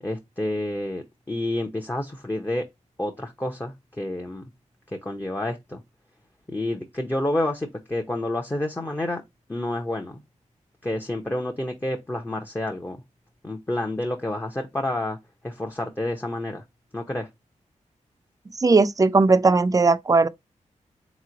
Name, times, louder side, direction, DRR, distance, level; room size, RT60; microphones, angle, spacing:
voice 1, 0.0-2.7 3.0-4.4 4.9-5.8 6.5-9.2 9.5-10.2 10.8-13.0 13.4-15.2 15.4-16.6 16.9-17.3, left 1 dB, 15° left, 0.7 m, -29 dB
voice 2, 18.6-20.3, right 3 dB, 25° right, 0.4 m, -18 dB
3.7 x 3.0 x 3.8 m
cardioid pair, 70°, 13 cm